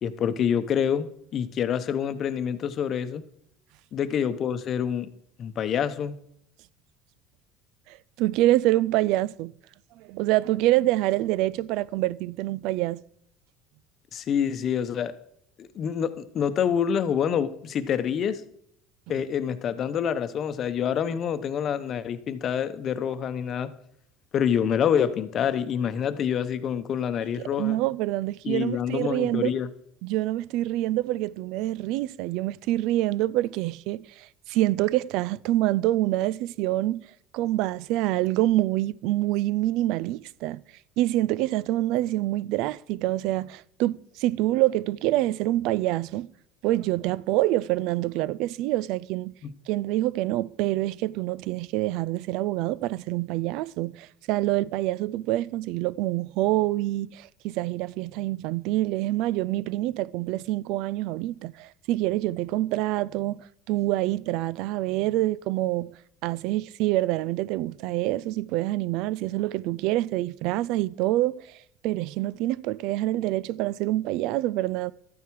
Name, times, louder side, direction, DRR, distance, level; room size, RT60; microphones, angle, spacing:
voice 1, 0.0-3.2 3.9-5.1 5.4-6.1 14.1-15.1 15.6-18.4 19.1-23.7 24.3-27.8 28.4-29.7 49.4-49.5, left 8 dB, 40° left, 0.9 m, -27 dB
voice 2, 7.9-9.5 10.0-13.0 27.4-29.5 30.0-37.0 37.3-40.6 41.0-46.3 46.6-49.3 49.7-71.6 71.8-74.9, right 16 dB, 70° right, 0.4 m, -26 dB
12.5 x 9.2 x 4.7 m
supercardioid pair, 125°, 0 cm